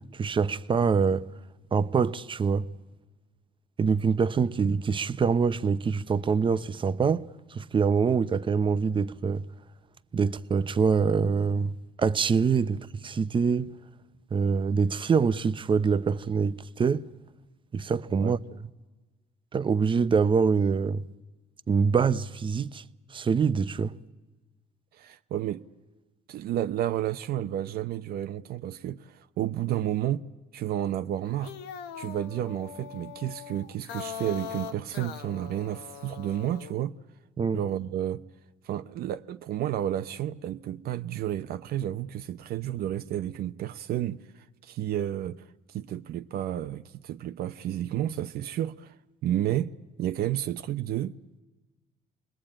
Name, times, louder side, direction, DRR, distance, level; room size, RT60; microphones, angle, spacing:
voice 1, 0.1-1.3 1.7-2.7 3.8-9.4 10.1-13.7 14.3-17.0 17.7-18.4 19.5-21.0 21.7-22.8 23.1-23.9 37.4-37.6, right 5 dB, 30° right, 0.8 m, -25 dB
voice 2, 24.9-25.6 26.3-30.3 30.5-31.5 32.0-37.0 37.5-38.2 38.6-48.9 49.2-49.7 50.0-51.1, right 12 dB, 65° right, 0.7 m, -31 dB
sound 1, 31.3-36.7, left 8 dB, 90° left, 1.2 m, -41 dB
28.0 x 20.5 x 8.8 m
cardioid pair, 110°, 17 cm